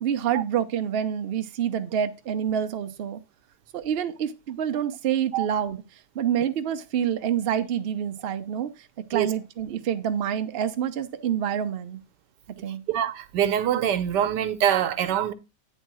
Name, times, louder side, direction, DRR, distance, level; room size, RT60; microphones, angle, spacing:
voice 1, 0.0-3.2 3.7-5.8 6.1-8.7 9.1-12.0 12.6-12.8, right 9 dB, 60° right, 0.6 m, -27 dB
voice 2, 12.9-15.3, right 10 dB, 85° right, 1.4 m, -24 dB
9.1 x 3.6 x 6.1 m
omnidirectional pair, 1.8 m